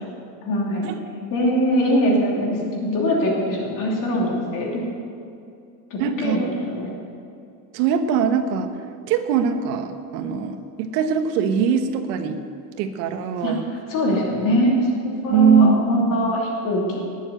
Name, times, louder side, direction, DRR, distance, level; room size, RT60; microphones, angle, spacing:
voice 1, 0.4-0.8 1.3-4.8 5.9-6.9 13.4-13.5 13.9-17.0, equal, 40° left, -2 dB, 3.0 m, -22 dB
voice 2, 6.0-6.4 7.7-8.7 9.1-12.4 12.8-13.6 15.3-16.3, right 6 dB, 80° right, 7 dB, 1.5 m, -21 dB
19.0 x 7.2 x 8.1 m, 2.6 s
cardioid pair, 175°, 48 cm